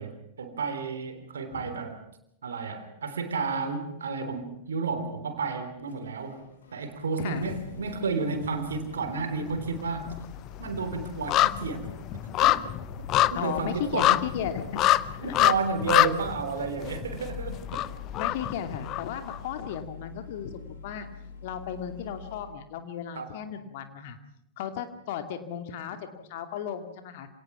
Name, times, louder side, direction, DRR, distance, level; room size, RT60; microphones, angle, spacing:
voice 1, 0.0-2.0 2.4-6.4 6.7-10.1 10.6-12.6 13.3-14.2 15.2-17.8 23.1-23.3, right 4 dB, 70° right, 8 dB, 3.4 m, -32 dB
Engine starting, 4.2-22.6, left 5 dB, 65° left, 3.4 m, -46 dB
voice 2, 7.2-7.6 13.3-14.8 15.2-15.3 17.7-17.8 18.2-21.1 21.4-24.2 24.6-27.3, left 8 dB, 50° left, 8 dB, 2.4 m, -35 dB
sound 1, 8.3-9.1 9.4-19.4 19.7-19.8, left 14 dB, 35° left, 0.7 m, -26 dB
27.0 x 18.5 x 6.1 m, 0.76 s
figure-of-eight pair, 90°, 0 cm